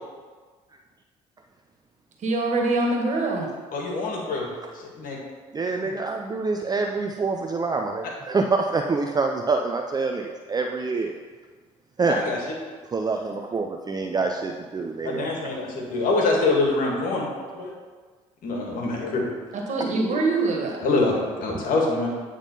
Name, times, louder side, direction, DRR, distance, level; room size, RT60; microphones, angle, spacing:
voice 1, 2.2-3.5 5.8-5.9 19.5-20.8, right 2 dB, 50° right, 0 dB, 1.8 m, -24 dB
voice 2, 3.7-5.2 12.0-12.4 15.0-17.3 17.5-17.7 18.4-19.2 20.8-22.1, left 3 dB, 60° left, -1 dB, 1.9 m, -25 dB
voice 3, 5.5-11.1 12.0-12.2 12.9-15.3, right 4 dB, 25° right, 3 dB, 0.5 m, -26 dB
8.9 x 3.7 x 5.4 m, 1.5 s
hypercardioid pair, 65°, 16 cm